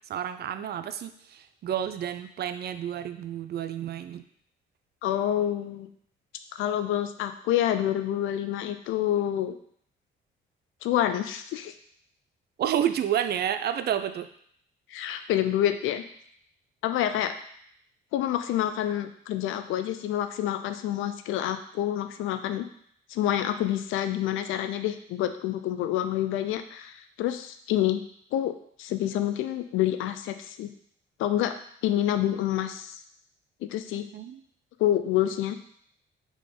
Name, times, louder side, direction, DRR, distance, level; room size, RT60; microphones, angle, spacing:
voice 1, 0.1-4.2 12.6-14.3 34.1-34.4, right 10 dB, 55° right, 10 dB, 0.4 m, -30 dB
voice 2, 5.0-5.9 6.5-9.6 10.8-11.7 14.9-16.0 16.8-17.3 18.1-22.7 23.1-28.0 28.3-30.7 31.2-31.5 31.8-33.0 33.6-34.1 34.8-35.8, left 12 dB, 85° left, 9 dB, 0.4 m, -27 dB
3.8 x 3.6 x 3.7 m, 0.65 s
cardioid pair, 90°, 20 cm